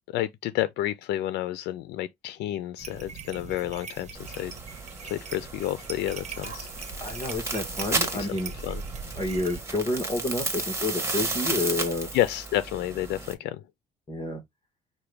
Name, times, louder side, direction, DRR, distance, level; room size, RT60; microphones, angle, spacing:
voice 1, 0.1-4.5 5.0-6.7 8.2-8.3 8.6-8.8 12.1-13.6, left 13 dB, 80° left, 0.5 m, -30 dB
sound 1, 2.8-9.6, right 5 dB, 40° right, 1.2 m, -41 dB
sound 2, 4.1-13.3, right 2 dB, 15° right, 1.5 m, -33 dB
voice 2, 7.0-8.5 9.1-12.1 14.1-14.4, left 2 dB, 25° left, 1.3 m, -29 dB
5.7 x 2.3 x 3.4 m
cardioid pair, 110°, 17 cm